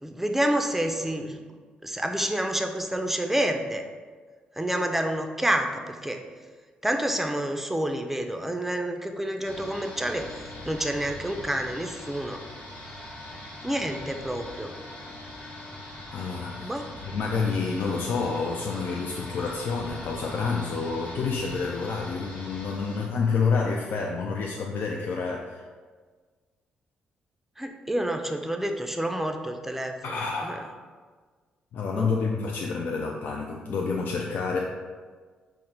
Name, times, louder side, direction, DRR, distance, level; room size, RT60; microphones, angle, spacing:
voice 1, 0.0-1.4 1.8-3.8 4.6-6.2 6.8-12.4 13.6-14.7 16.6-16.9 27.6-30.6 31.9-32.1, right 1 dB, 5° right, 5 dB, 0.4 m, -29 dB
sound 1, 9.4-23.1, left 1 dB, 50° left, 0.9 m, -42 dB
voice 2, 16.1-16.6 17.0-25.6 30.0-30.8 31.7-34.7, left 4 dB, 65° left, 0 dB, 0.3 m, -28 dB
3.7 x 2.1 x 4.4 m, 1.5 s
supercardioid pair, 55°, 3 cm